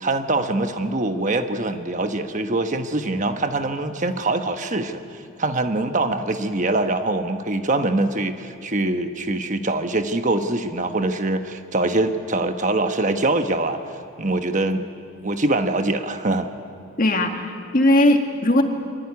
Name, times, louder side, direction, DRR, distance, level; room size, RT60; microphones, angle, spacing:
voice 1, 0.0-5.0 5.4-13.8 14.2-14.8 15.2-16.5, right 2 dB, 35° right, 7 dB, 1.2 m, -23 dB
voice 2, 17.0-18.6, left 1 dB, 40° left, 5 dB, 2.0 m, -18 dB
25.0 x 22.0 x 9.7 m, 2.4 s
head